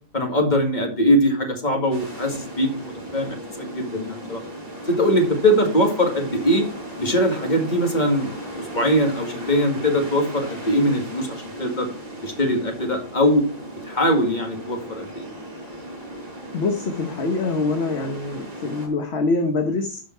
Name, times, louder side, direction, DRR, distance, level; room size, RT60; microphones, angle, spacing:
voice 1, 0.1-4.4 4.8-6.6 7.0-11.9 12.2-13.5 13.9-15.3, equal, 30° left, 2 dB, 2.1 m, -21 dB
sound 1, 1.9-18.9, right 1 dB, 25° right, 4.1 m, -36 dB
voice 2, 16.5-20.0, left 3 dB, 45° left, 4 dB, 1.3 m, -24 dB
11.5 x 5.4 x 4.5 m, 0.43 s
omnidirectional pair, 1.6 m